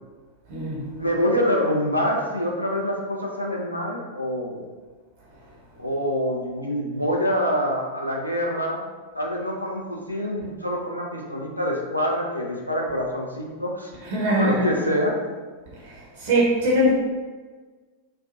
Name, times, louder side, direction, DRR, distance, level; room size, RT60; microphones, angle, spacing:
voice 1, 1.0-4.7 5.8-8.8 9.1-13.9 14.3-15.1, equal, 90° left, -1 dB, 0.4 m, -26 dB
voice 2, 14.1-14.7 15.8-15.9 16.2-16.9, equal, 50° right, -4 dB, 0.7 m, -21 dB
3.1 x 2.2 x 2.6 m, 1.4 s
figure-of-eight pair, 90°, 0 cm